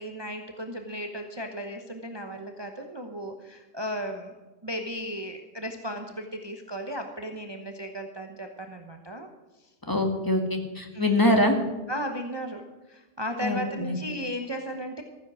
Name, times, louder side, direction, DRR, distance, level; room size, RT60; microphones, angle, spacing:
voice 1, 0.0-4.3 4.6-9.3 9.6-9.7 10.9-11.3 11.9-12.6 12.9-15.0, equal, 25° right, 4 dB, 0.9 m, -35 dB
voice 2, 9.9-11.6 13.4-14.0, left 1 dB, 20° left, 4 dB, 1.5 m, -24 dB
14.5 x 9.8 x 6.2 m, 1.2 s
omnidirectional pair, 1.2 m